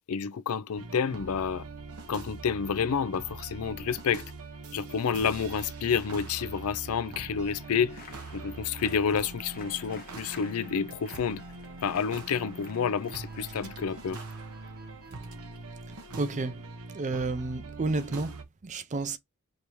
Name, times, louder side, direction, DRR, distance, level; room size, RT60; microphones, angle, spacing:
voice 1, 0.1-1.7 2.1-4.3 4.7-8.0 8.3-11.4 11.8-14.2, left 6 dB, 70° left, 0.4 m, -29 dB
sound 1, 0.8-18.4, right 3 dB, 70° right, 0.9 m, -43 dB
sound 2, 7.5-17.2, left 5 dB, 40° left, 1.0 m, -54 dB
sound 3, 8.8-10.5 10.9-11.7 12.0-12.6 12.9-14.7 15.0-15.6, right 5 dB, 90° right, 2.5 m, -58 dB
voice 2, 16.2-16.6 16.9-19.2, right 3 dB, 35° right, 0.5 m, -31 dB
5.0 x 2.7 x 3.0 m
head